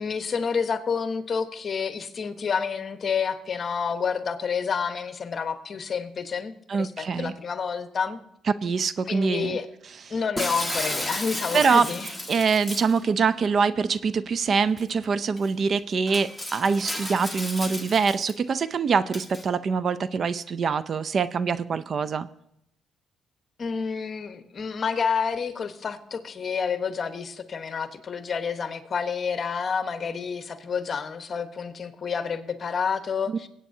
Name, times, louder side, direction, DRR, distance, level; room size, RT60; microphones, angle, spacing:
voice 1, 0.0-8.2 9.1-9.7 10.1-12.1 23.6-33.5, left 6 dB, 45° left, 1.1 m, -29 dB
voice 2, 6.7-7.3 8.6-9.6 11.5-11.9 12.3-22.3 33.3-33.5, right 5 dB, 50° right, 0.5 m, -24 dB
Shatter, 10.4-13.0 14.8-14.9 15.4-15.5 16.1-18.3 19.1-19.4, left 1 dB, 5° right, 1.5 m, -33 dB
21.5 x 8.8 x 2.7 m
cardioid pair, 90°, 0 cm